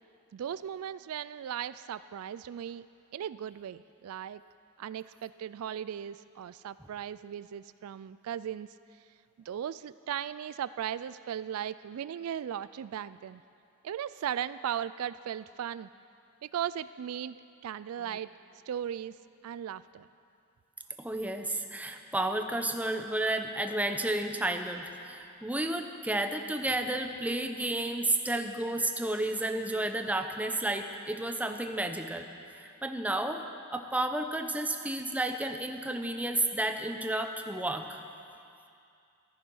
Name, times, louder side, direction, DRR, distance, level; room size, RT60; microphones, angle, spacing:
voice 1, 0.3-2.9 3.1-4.4 4.8-8.7 9.4-13.4 13.8-15.9 16.4-17.4 17.6-18.3 18.7-19.1 19.4-20.1, right 9 dB, 75° right, 16 dB, 0.3 m, -37 dB
voice 2, 21.0-32.3 32.5-33.4 33.7-38.0, right 1 dB, 5° right, 6 dB, 0.7 m, -32 dB
15.0 x 13.0 x 5.5 m, 2.5 s
head